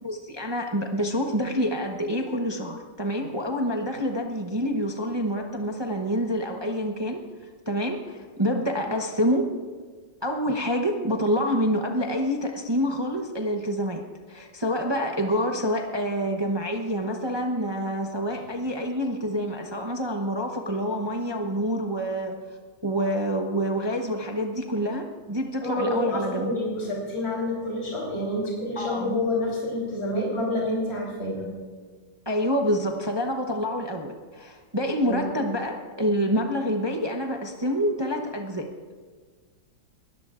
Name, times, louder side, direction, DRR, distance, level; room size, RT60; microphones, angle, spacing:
voice 1, 0.0-9.5 10.2-14.0 14.3-22.3 22.8-26.5 28.8-29.2 32.3-38.7, equal, 20° right, 2 dB, 0.7 m, -27 dB
voice 2, 25.6-31.5 35.0-35.2, left 1 dB, 35° left, -4 dB, 4.0 m, -28 dB
23.0 x 17.5 x 2.5 m, 1.5 s
omnidirectional pair, 1.9 m